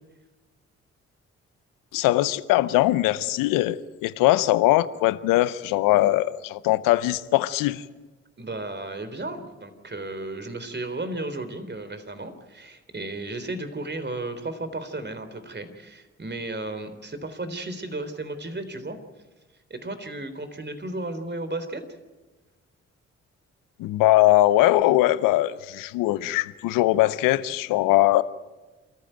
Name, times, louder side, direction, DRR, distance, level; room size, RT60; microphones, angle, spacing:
voice 1, 1.9-7.8 23.8-28.2, left 16 dB, 85° left, 16 dB, 0.7 m, -21 dB
voice 2, 8.4-19.0 19.7-21.8, right 2 dB, 35° right, 10 dB, 3.7 m, -34 dB
27.0 x 14.5 x 9.1 m, 1.2 s
hypercardioid pair, 40°, 32 cm